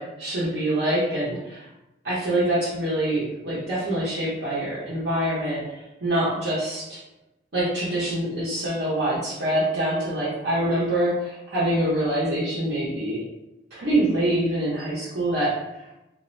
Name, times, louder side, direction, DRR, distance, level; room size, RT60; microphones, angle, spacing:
voice 1, 0.0-1.7 2.0-5.6 6.0-7.0 7.5-13.2 13.8-15.5, right 1 dB, 70° right, -10 dB, 0.7 m, -25 dB
2.4 x 2.1 x 2.5 m, 0.93 s
head